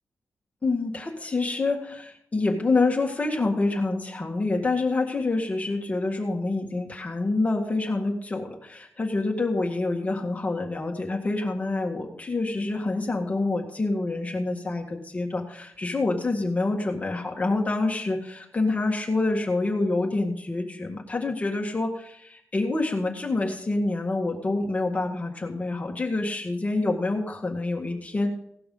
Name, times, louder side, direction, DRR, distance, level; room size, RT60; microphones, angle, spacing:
voice 1, 0.6-28.4, left 2 dB, 30° left, 0 dB, 1.7 m, -27 dB
17.5 x 5.9 x 5.4 m, 0.70 s
wide cardioid pair, 100°, 5 cm